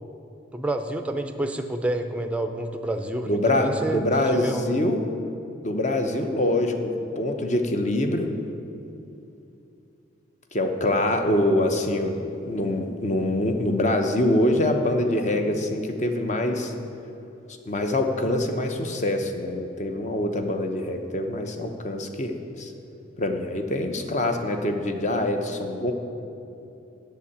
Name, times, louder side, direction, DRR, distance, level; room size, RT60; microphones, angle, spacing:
voice 1, 0.5-4.8, right 1 dB, 5° right, 6 dB, 0.5 m, -28 dB
voice 2, 3.3-5.0 5.6-8.3 10.5-16.7 17.7-22.7 23.2-25.9, left 1 dB, 35° left, 5 dB, 0.8 m, -25 dB
8.2 x 6.8 x 8.4 m, 2.8 s
head